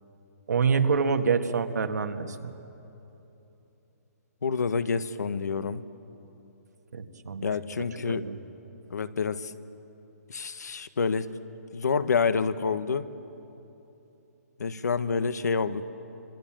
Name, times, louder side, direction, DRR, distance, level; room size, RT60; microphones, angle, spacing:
voice 1, 0.5-2.5 6.9-7.5 8.0-8.4, right 5 dB, 80° right, 6 dB, 1.8 m, -26 dB
voice 2, 4.4-5.8 7.4-8.3 8.9-9.5 10.3-11.3 11.7-13.1 14.6-15.8, left 5 dB, 85° left, 12 dB, 1.3 m, -28 dB
26.5 x 26.0 x 7.5 m, 3.0 s
hypercardioid pair, 165°, 9 cm